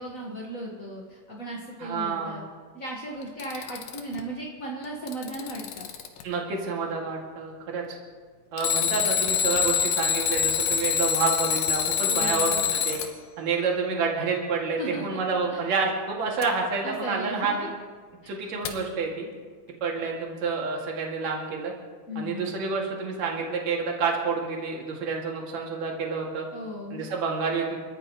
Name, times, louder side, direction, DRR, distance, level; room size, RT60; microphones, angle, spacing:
voice 1, 0.0-2.4 2.7-5.9 12.1-12.6 14.8-15.2 15.5-15.6 16.8-17.7 18.2-18.5 22.1-22.6 26.5-27.0, right 1 dB, 40° left, -3 dB, 1.1 m, -36 dB
voice 2, 1.8-2.4 6.2-7.8 8.5-13.0 13.4-17.7 18.3-19.3 19.8-21.7 22.2-26.5 26.9-27.8, right 4 dB, 55° right, -1 dB, 3.4 m, -28 dB
Alarm, 3.2-4.2 4.8-6.2 8.6-13.1 16.4-16.5 18.7-18.8, left 8 dB, 90° left, 2.9 m, -26 dB
29.5 x 14.5 x 3.1 m, 1.5 s
omnidirectional pair, 3.9 m